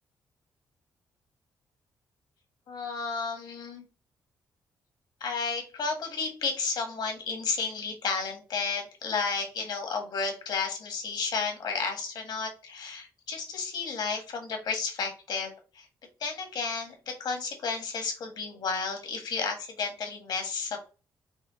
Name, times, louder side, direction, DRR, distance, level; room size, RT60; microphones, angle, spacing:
voice 1, 2.7-3.8 5.2-15.9 16.2-20.8, left 4 dB, 70° left, 3 dB, 1.7 m, -32 dB
5.5 x 2.2 x 4.3 m, 0.33 s
cardioid pair, 80°, 8 cm